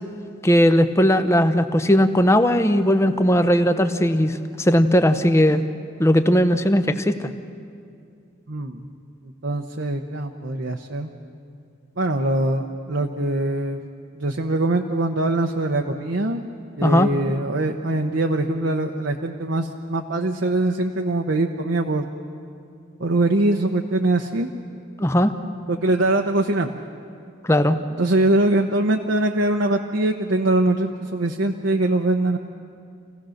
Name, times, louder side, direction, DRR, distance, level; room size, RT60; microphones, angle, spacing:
voice 1, 0.4-5.6 6.0-7.3 16.8-17.1 25.0-25.3 27.4-27.8, equal, 15° left, 10 dB, 0.7 m, -18 dB
voice 2, 8.5-8.8 9.4-11.1 12.0-13.9 14.2-16.4 16.8-22.1 23.0-24.5 25.7-26.7 28.0-32.4, right 2 dB, 65° right, 3 dB, 0.9 m, -22 dB
27.5 x 16.5 x 6.5 m, 2.4 s
head